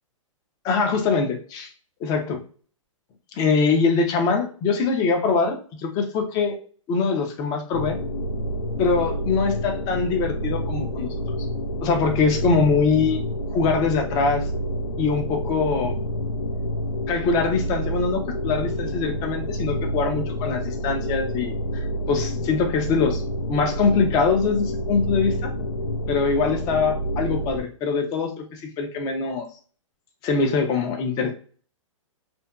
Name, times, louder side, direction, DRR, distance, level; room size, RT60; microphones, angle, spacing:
voice 1, 0.6-1.7 2.0-2.4 3.4-6.6 6.9-8.0 8.8-11.1 11.8-13.2 13.5-14.5 15.0-15.9 17.1-23.2 23.5-25.5 26.1-28.4 28.8-29.5 30.2-31.3, left 4 dB, 20° left, 4 dB, 0.5 m, -23 dB
sound 1, 7.7-27.6, equal, 75° left, 0.6 m, -28 dB
2.7 x 2.6 x 2.3 m, 0.43 s
hypercardioid pair, 145°, 17 cm